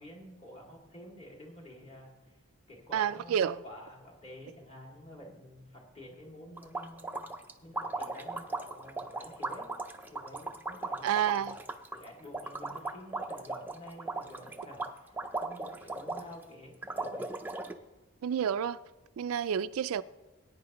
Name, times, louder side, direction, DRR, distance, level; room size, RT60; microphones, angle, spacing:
voice 1, 0.0-2.4 2.7-7.2 7.6-9.7 10.1-11.5 11.9-17.4, equal, 25° left, 2.4 m, -50 dB
voice 2, 2.9-3.6 11.0-11.6 18.2-18.8 19.2-20.0, right 8 dB, 70° right, 0.3 m, -29 dB
sound 1, 6.6-16.4 16.8-17.8, right 3 dB, 10° right, 0.4 m, -37 dB
20.0 x 9.6 x 3.0 m
head